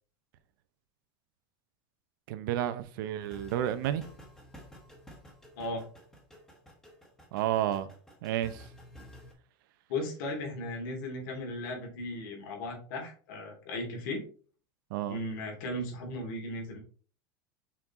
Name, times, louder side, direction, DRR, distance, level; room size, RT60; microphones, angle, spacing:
voice 1, 2.3-4.0 7.3-7.9 8.2-8.6 14.9-15.2, right 11 dB, 70° right, 0.7 m, -31 dB
sound 1, 3.2-9.3, equal, 5° left, 1.2 m, -52 dB
voice 2, 9.9-14.3 15.1-16.8, left 1 dB, 65° left, 2.7 m, -36 dB
5.9 x 4.6 x 3.7 m
supercardioid pair, 165°, 11 cm